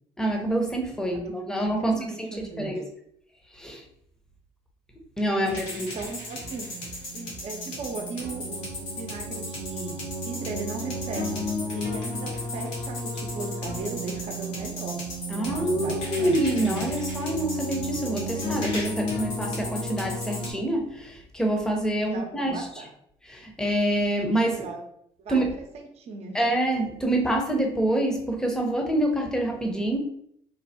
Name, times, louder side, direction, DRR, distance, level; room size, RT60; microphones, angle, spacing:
voice 1, 0.2-2.9 3.5-3.8 5.2-5.9 15.3-22.7 23.3-24.7 25.3-25.5 26.3-30.0, right 1 dB, 5° left, 2 dB, 0.7 m, -26 dB
voice 2, 1.2-2.8 5.3-6.7 7.1-15.0 15.3-16.6 22.0-22.9 24.5-24.8 25.2-26.4, right 3 dB, 55° right, 3 dB, 0.7 m, -38 dB
sound 1, 5.5-20.5, equal, 85° left, 1.2 m, -32 dB
3.2 x 2.2 x 2.7 m, 0.70 s
supercardioid pair, 80°, 13 cm